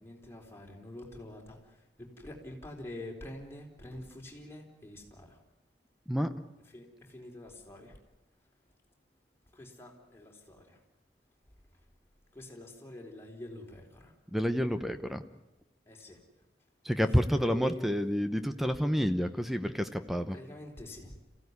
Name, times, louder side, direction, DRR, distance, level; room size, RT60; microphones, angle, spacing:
voice 1, 0.0-5.4 6.7-8.0 9.5-10.8 12.3-14.1 15.9-16.2 17.4-17.9 20.3-21.2, left 1 dB, 15° left, 0 dB, 4.2 m, -46 dB
voice 2, 14.3-15.2 16.8-20.4, equal, ahead, 9 dB, 0.9 m, -29 dB
27.0 x 16.0 x 9.7 m, 1.0 s
head